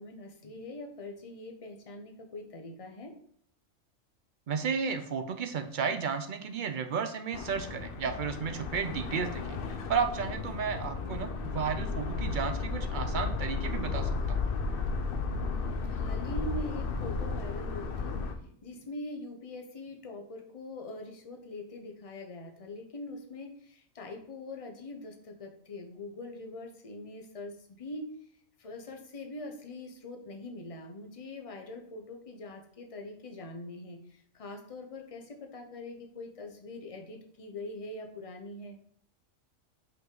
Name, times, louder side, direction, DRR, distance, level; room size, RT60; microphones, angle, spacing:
voice 1, 0.0-3.1 15.5-28.1 28.6-38.8, left 2 dB, 30° left, 2 dB, 0.9 m, -43 dB
voice 2, 4.5-14.4, right 6 dB, 60° right, 8 dB, 0.5 m, -33 dB
sound 1, 7.3-18.3, left 4 dB, 55° left, 0.7 m, -34 dB
5.4 x 5.3 x 3.8 m, 0.63 s
omnidirectional pair, 1.4 m